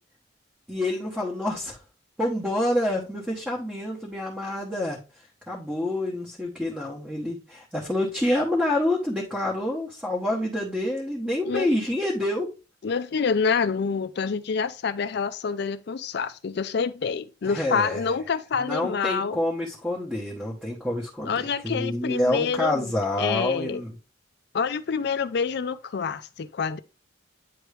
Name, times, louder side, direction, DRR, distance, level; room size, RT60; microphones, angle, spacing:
voice 1, 0.7-1.8 2.2-5.0 5.5-12.5 17.4-18.0 18.5-23.9, left 1 dB, 5° right, 1.1 m, -27 dB
voice 2, 12.8-19.4 21.2-22.9 23.2-23.8 24.5-26.8, left 5 dB, 55° left, 0.4 m, -27 dB
9.3 x 3.1 x 3.3 m
head